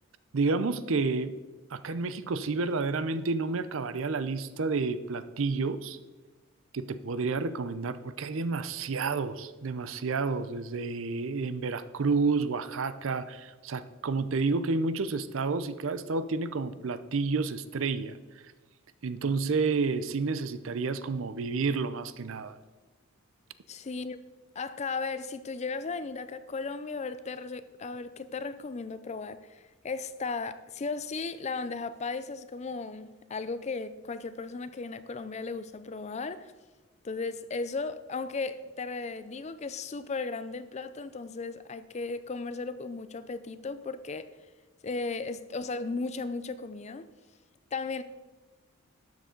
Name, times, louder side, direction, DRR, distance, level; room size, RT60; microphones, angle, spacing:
voice 1, 0.3-1.4 1.7-6.0 6.7-18.2 19.0-22.6, right 4 dB, 65° right, 0.5 m, -30 dB
voice 2, 23.7-24.2 24.6-36.5 37.0-44.3 44.8-47.1 47.7-48.0, left 4 dB, 30° left, 0.4 m, -36 dB
12.5 x 7.5 x 3.8 m
head